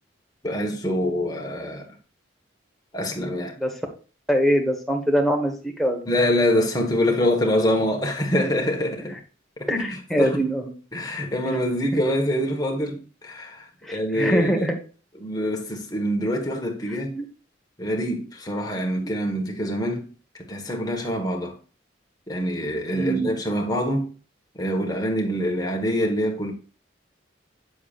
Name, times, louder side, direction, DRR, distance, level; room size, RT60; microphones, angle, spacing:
voice 1, 0.4-1.8 2.9-3.6 6.0-9.1 9.6-10.5 10.9-14.7 15.1-17.2 17.8-20.1 20.3-21.6 22.3-24.1 24.5-26.5, equal, 20° left, 1.5 m, -25 dB
voice 2, 4.3-6.1 9.7-10.6 11.9-12.0 13.9-14.7 17.1-17.2 22.9-23.3, equal, ahead, 1.4 m, -23 dB
8.6 x 7.2 x 2.5 m
head